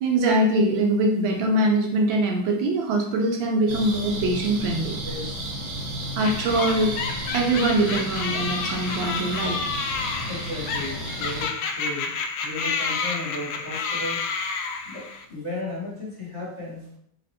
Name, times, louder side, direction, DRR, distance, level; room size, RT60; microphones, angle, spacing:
voice 1, 0.0-5.0 6.2-6.9 7.3-9.7, right 1 dB, 75° right, 2 dB, 1.4 m, -23 dB
sound 1, 3.7-11.5, right 1 dB, 45° right, 1.1 m, -33 dB
voice 2, 5.0-5.6 10.3-14.2 14.8-16.8, left 2 dB, 20° left, -6 dB, 1.2 m, -35 dB
sound 2, 6.2-15.3, left 4 dB, 85° left, 1.4 m, -30 dB
4.2 x 2.9 x 4.2 m, 0.71 s
omnidirectional pair, 2.3 m